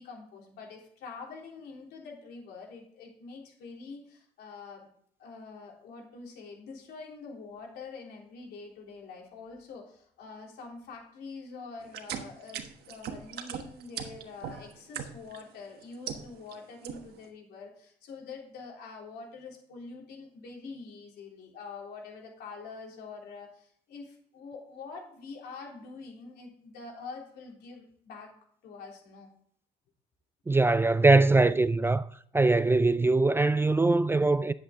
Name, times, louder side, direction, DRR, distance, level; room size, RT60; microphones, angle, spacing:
voice 1, 0.0-4.9 5.2-28.3 28.6-29.3, left 4 dB, 70° left, 3.4 m, -45 dB
sound 1, 11.9-15.4 15.8-16.5 16.8-17.2, right 9 dB, 70° right, 1.3 m, -39 dB
voice 2, 30.5-32.0 32.3-34.5, right 3 dB, 15° right, 0.3 m, -22 dB
10.5 x 7.9 x 3.8 m
cardioid pair, 110°, 17 cm